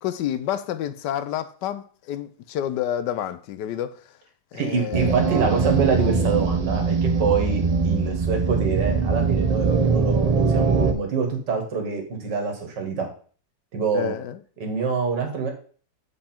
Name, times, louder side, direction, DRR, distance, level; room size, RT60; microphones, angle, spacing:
voice 1, 0.0-4.0 4.5-5.1 13.9-14.4, left 10 dB, 80° left, 1.2 m, -29 dB
voice 2, 4.5-13.1 13.7-14.2 14.6-15.5, right 5 dB, 80° right, 2.2 m, -25 dB
sound 1, 4.9-10.9, right 4 dB, 55° right, 0.4 m, -22 dB
7.6 x 4.8 x 4.3 m
omnidirectional pair, 1.8 m